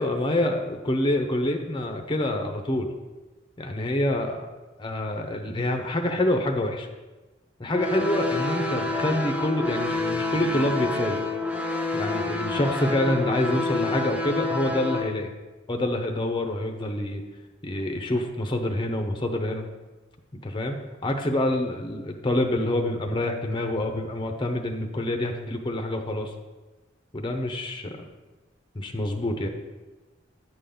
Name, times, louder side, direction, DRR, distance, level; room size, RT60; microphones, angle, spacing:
voice 1, 0.0-2.9 3.6-4.5 4.8-6.9 7.6-11.2 11.9-15.3 15.7-17.2 17.6-19.6 20.3-20.8 21.0-26.3 27.1-28.0 28.7-29.5, left 1 dB, 25° left, 4 dB, 0.7 m, -26 dB
sound 1, 7.7-15.1, left 2 dB, 5° right, 0.9 m, -28 dB
9.3 x 3.9 x 6.9 m, 1.2 s
head